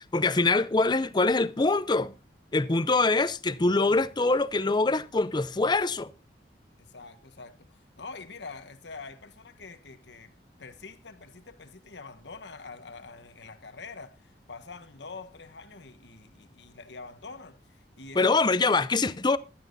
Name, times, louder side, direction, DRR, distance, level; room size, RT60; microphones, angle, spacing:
voice 1, 0.0-2.1 2.5-6.1 18.2-19.4, left 3 dB, 25° left, 0.5 m, -24 dB
voice 2, 6.8-10.3 10.6-18.5, left 4 dB, 85° left, 1.3 m, -45 dB
16.0 x 12.0 x 2.6 m
head